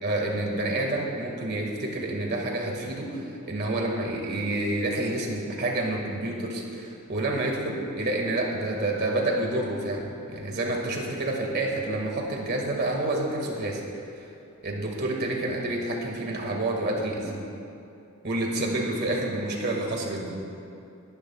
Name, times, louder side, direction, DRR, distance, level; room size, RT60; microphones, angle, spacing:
voice 1, 0.0-13.8 14.6-17.4 18.2-20.4, right 2 dB, 50° right, 0 dB, 2.0 m, -28 dB
21.0 x 11.5 x 2.4 m, 2.6 s
head